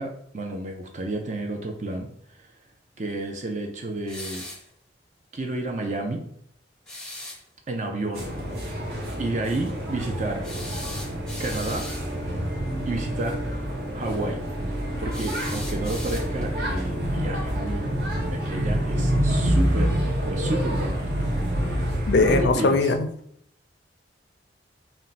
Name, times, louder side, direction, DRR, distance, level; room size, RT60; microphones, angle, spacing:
voice 1, 0.0-2.5 3.0-4.4 5.3-6.2 7.7-8.3 9.2-10.5 11.4-11.9 12.9-13.4 13.9-14.4 15.0-17.9 18.2-20.0 20.2-21.0 22.3-22.9, right 2 dB, 40° right, 2 dB, 0.5 m, -31 dB
sound 1, 4.1-4.7 6.9-7.4 10.4-12.1 15.1-16.5, left 1 dB, 5° left, 0.6 m, -38 dB
sound 2, 8.1-22.4, equal, 55° right, 1.0 m, -27 dB
voice 2, 22.0-23.1, left 3 dB, 65° left, 7 dB, 0.4 m, -20 dB
4.3 x 2.2 x 4.0 m, 0.68 s
head